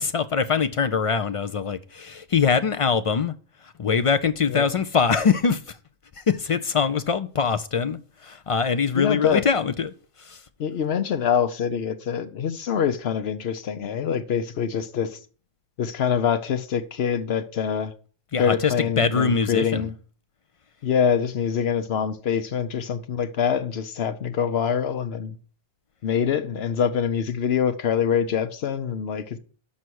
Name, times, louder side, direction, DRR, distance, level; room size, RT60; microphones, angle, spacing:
voice 1, 0.0-3.3 3.8-5.8 6.3-9.9 10.2-10.4 18.3-19.9, left 6 dB, 55° left, 0.4 m, -23 dB
voice 2, 9.0-9.4 10.6-15.2 15.8-17.9 18.4-19.9 20.8-25.4 26.0-29.4, left 7 dB, 80° left, 1.0 m, -25 dB
6.4 x 5.6 x 6.2 m
omnidirectional pair, 1.0 m